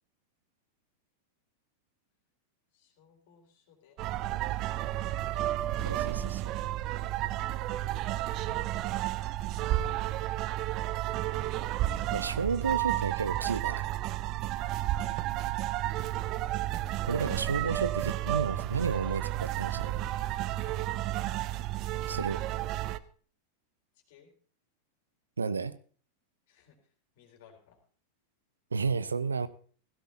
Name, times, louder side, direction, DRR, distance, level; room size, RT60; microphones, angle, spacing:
voice 1, 2.7-4.9 17.6-17.8 18.3-18.4 20.3-21.3 23.9-24.3 26.5-27.8, left 7 dB, 50° left, 3.8 m, -61 dB
sound 1, 4.0-23.0, right 14 dB, 40° right, 0.6 m, -32 dB
voice 2, 5.9-6.5 12.1-13.9 17.1-20.0 22.1-22.4 25.4-25.8 28.7-29.5, right 5 dB, 75° right, 0.6 m, -32 dB
17.0 x 16.0 x 2.8 m
figure-of-eight pair, 90°, 0 cm